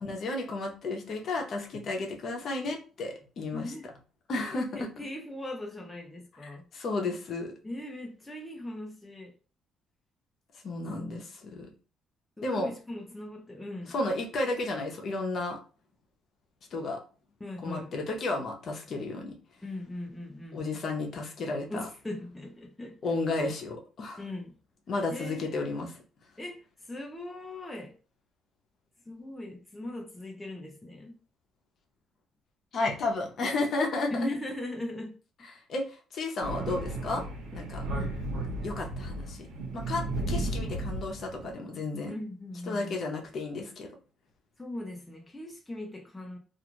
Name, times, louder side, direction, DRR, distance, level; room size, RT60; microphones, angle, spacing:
voice 1, 0.0-3.7 4.3-4.9 6.4-7.5 10.6-11.7 12.4-12.7 13.9-15.6 16.7-17.0 17.6-19.3 20.5-21.8 23.0-24.2 24.9-26.0 32.7-34.3 35.5-37.2 37.5-37.9 38.6-42.1 42.7-43.9, left 2 dB, 55° left, 0.8 m, -33 dB
voice 2, 3.5-3.9 4.7-6.7 7.6-9.3 12.4-14.0 17.4-17.9 19.6-20.6 21.7-23.0 24.2-24.6 25.1-25.6 26.4-28.0 29.1-31.1 34.1-35.2 42.1-43.0 44.6-46.4, left 1 dB, 10° left, 0.6 m, -39 dB
Thunder, 36.4-41.5, right 1 dB, 80° right, 0.9 m, -34 dB
2.5 x 2.3 x 3.0 m
cardioid pair, 115°, 0 cm